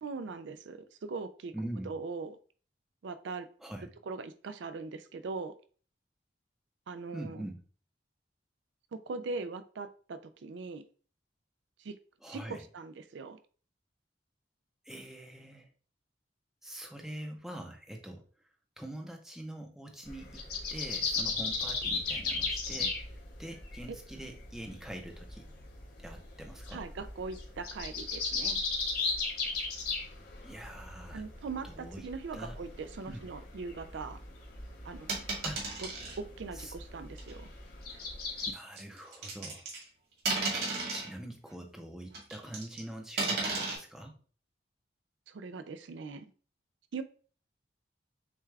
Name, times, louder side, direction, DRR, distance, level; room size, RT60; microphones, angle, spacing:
voice 1, 0.0-1.5 1.8-2.4 3.0-3.5 4.1-5.5 6.9-7.4 8.9-10.8 11.8-11.9 12.3-13.4 23.9-24.0 26.7-28.6 31.1-34.2 34.8-35.3 35.8-35.9 36.2-37.5 45.3-46.3 46.9-47.0, right 4 dB, 75° right, 11 dB, 0.4 m, -40 dB
voice 2, 1.5-1.9 3.6-3.9 7.1-7.6 12.2-12.6 14.8-15.7 16.6-18.2 18.8-20.4 20.7-25.4 26.0-26.8 30.4-31.2 31.6-32.1 32.3-32.6 33.1-33.2 35.4-35.6 36.5-36.7 38.4-39.7 40.9-44.1, right 1 dB, ahead, 2 dB, 0.6 m, -44 dB
sound 1, 20.1-38.5, left 4 dB, 55° left, 1.4 m, -37 dB
sound 2, 35.1-36.2 37.2-37.3 38.8-39.9 40.2-41.1 42.1-42.8 43.2-43.8, right 3 dB, 55° right, 1.9 m, -33 dB
6.7 x 2.3 x 3.2 m, 0.41 s
head